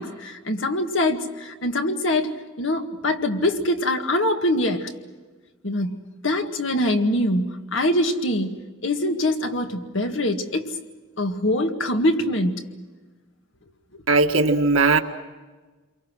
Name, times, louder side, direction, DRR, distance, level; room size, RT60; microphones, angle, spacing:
voice 1, 0.0-4.9 5.6-10.7 11.2-12.6 13.9-14.0, left 1 dB, 65° left, 5 dB, 2.0 m, -24 dB
voice 2, 14.1-15.0, right 3 dB, 80° right, 5 dB, 1.8 m, -18 dB
29.0 x 23.5 x 6.2 m, 1.3 s
head